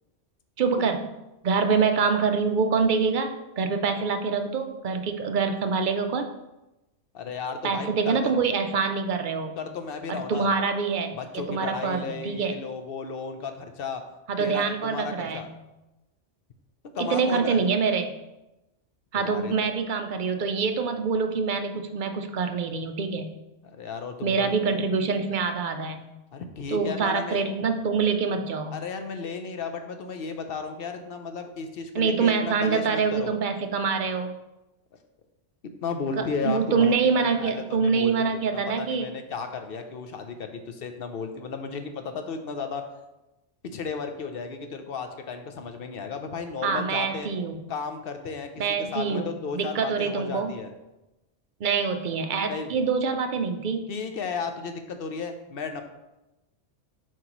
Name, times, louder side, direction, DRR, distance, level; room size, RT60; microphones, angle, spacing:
voice 1, 0.6-1.1 1.4-6.3 7.6-9.6 10.1-12.6 14.3-15.5 17.0-18.1 19.1-23.3 24.2-26.1 26.7-28.7 31.9-34.3 36.2-39.1 46.6-47.6 48.6-50.5 51.6-53.9, right 5 dB, 55° right, 6 dB, 0.6 m, -25 dB
voice 2, 7.1-8.4 9.6-10.5 11.1-14.0 14.4-15.5 16.9-17.6 19.1-19.5 23.7-24.6 26.3-27.4 28.7-33.3 35.8-37.0 37.4-42.8 43.6-47.3 47.7-48.5 48.8-50.7 52.5-52.7 53.9-55.8, left 5 dB, 55° left, 6 dB, 0.8 m, -34 dB
7.6 x 4.6 x 3.0 m, 0.98 s
omnidirectional pair, 1.2 m